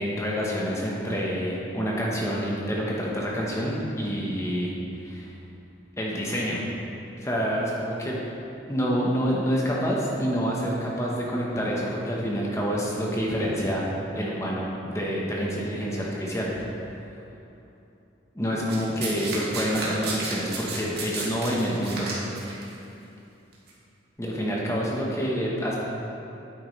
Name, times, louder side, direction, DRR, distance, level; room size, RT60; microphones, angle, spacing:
voice 1, 0.0-4.7 5.0-5.3 6.0-6.6 7.2-8.2 8.7-13.8 14.1-16.5 18.3-22.1 24.2-25.8, equal, 15° left, -4 dB, 1.0 m, -27 dB
Domestic sounds home sounds, 18.7-22.6 23.5-23.7, right 3 dB, 55° right, 1.8 m, -33 dB
9.3 x 8.5 x 3.2 m, 2.8 s
head